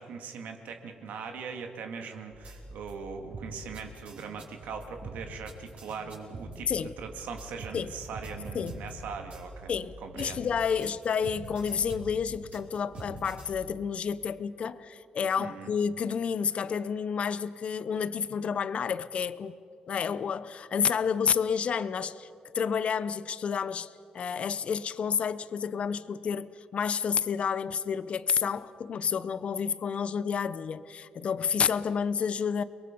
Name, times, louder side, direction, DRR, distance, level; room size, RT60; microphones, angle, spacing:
voice 1, 0.0-9.7 10.0-10.4 15.4-15.7, right 5 dB, 90° right, 2.2 m, -40 dB
sound 1, 2.3-2.9 3.3-9.8 10.2-13.5, right 2 dB, 50° right, 5.4 m, -43 dB
voice 2, 9.7-19.5 19.9-22.3 22.5-32.6, left 6 dB, 50° left, 0.7 m, -30 dB
30.0 x 22.0 x 5.4 m
cardioid pair, 130°, 3 cm